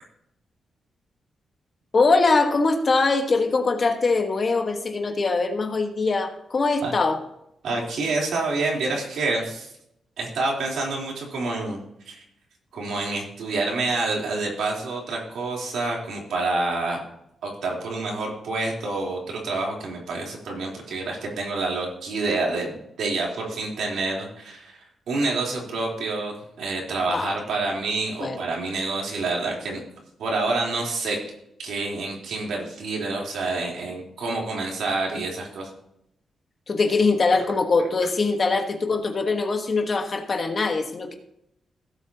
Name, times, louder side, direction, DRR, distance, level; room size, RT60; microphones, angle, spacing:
voice 1, 1.9-7.2 27.1-27.3 28.2-28.4 36.7-41.1, left 3 dB, 30° left, 5 dB, 1.3 m, -22 dB
voice 2, 7.6-9.7 10.2-12.2 12.7-17.0 17.4-24.8 25.1-29.8 30.2-31.2 31.6-35.7, right 3 dB, 85° right, -2 dB, 3.5 m, -28 dB
17.0 x 8.0 x 2.8 m, 0.77 s
wide cardioid pair, 175°, 0 cm